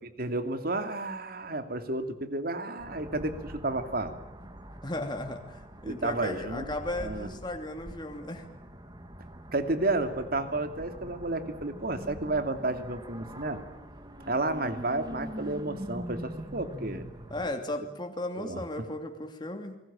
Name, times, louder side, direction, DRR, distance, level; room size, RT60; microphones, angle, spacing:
voice 1, 0.0-4.1 5.8-6.7 7.0-7.3 9.5-13.6 14.3-17.1 18.4-18.6, right 2 dB, 55° right, 8 dB, 2.7 m, -31 dB
sound 1, 2.8-17.5, equal, 25° right, 2.4 m, -44 dB
voice 2, 4.8-8.5 17.3-19.8, left 1 dB, 25° left, 4 dB, 2.8 m, -35 dB
29.0 x 21.5 x 8.8 m, 0.84 s
head